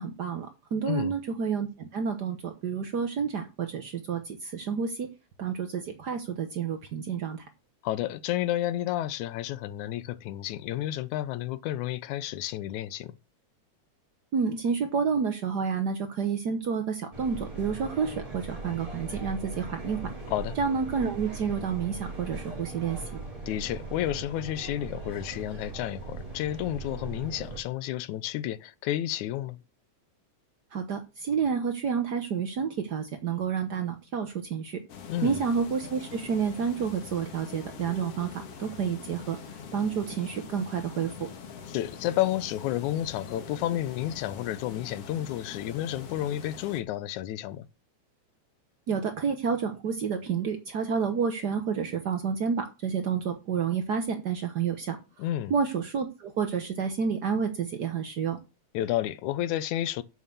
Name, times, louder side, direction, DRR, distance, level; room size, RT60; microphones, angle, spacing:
voice 1, 0.0-5.1 5.4-7.4 14.3-20.0 20.6-23.0 30.7-34.8 35.2-39.4 39.7-41.3 48.9-55.0 55.5-58.4, right 6 dB, 80° right, 0.9 m, -29 dB
voice 2, 7.8-13.2 20.3-20.6 23.5-29.6 35.1-35.4 41.7-47.7 55.2-55.5 58.7-60.0, left 13 dB, 80° left, 2.1 m, -31 dB
sound 1, 17.1-27.6, right 3 dB, 10° right, 3.4 m, -39 dB
sound 2, 34.9-46.8, left 6 dB, 55° left, 2.3 m, -44 dB
7.2 x 6.3 x 7.0 m
omnidirectional pair, 3.5 m